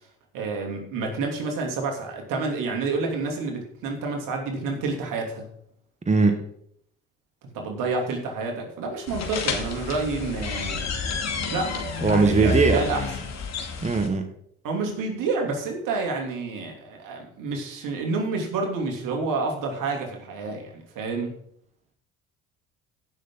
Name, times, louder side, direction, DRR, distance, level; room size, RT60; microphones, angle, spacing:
voice 1, 0.3-5.5 7.5-10.9 11.2-13.1 14.6-21.4, right 3 dB, 65° right, 2 dB, 3.0 m, -29 dB
voice 2, 6.0-6.4 12.0-12.8 13.8-14.2, right 4 dB, 20° right, 6 dB, 1.5 m, -20 dB
sound 1, 9.1-14.1, left 4 dB, 50° left, 2.3 m, -30 dB
15.5 x 6.5 x 3.9 m, 0.68 s
hypercardioid pair, 60°, 35 cm